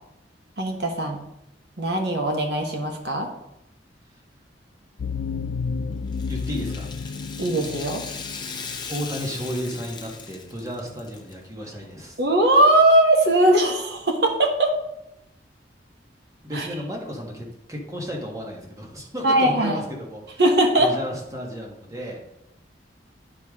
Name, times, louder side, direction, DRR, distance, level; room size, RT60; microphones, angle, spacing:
voice 1, 0.6-1.2 1.8-3.3 7.4-8.0 12.2-14.7 16.5-16.7 19.2-19.8 20.4-20.9, right 1 dB, 65° right, 2 dB, 1.3 m, -20 dB
sound 1, 5.0-9.8, left 5 dB, 60° left, 0.3 m, -32 dB
Rattle (instrument), 6.1-11.3 11.6-11.7 12.6-12.7, left 5 dB, 25° left, 0.8 m, -38 dB
voice 2, 6.3-6.9 8.9-12.2 16.4-20.4 20.8-22.2, equal, 20° right, -1 dB, 1.5 m, -33 dB
10.0 x 4.9 x 3.7 m, 0.84 s
head